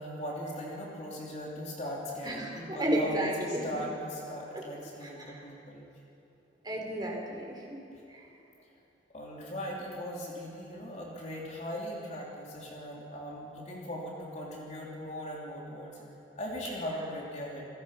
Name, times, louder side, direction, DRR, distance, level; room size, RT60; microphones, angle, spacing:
voice 1, 0.0-5.9 9.1-17.7, equal, 40° left, -3 dB, 3.5 m, -39 dB
voice 2, 2.2-3.7 5.0-5.4 6.6-7.8 8.1-8.2, right 1 dB, 25° right, -1 dB, 4.6 m, -32 dB
29.5 x 21.0 x 6.0 m, 2.8 s
head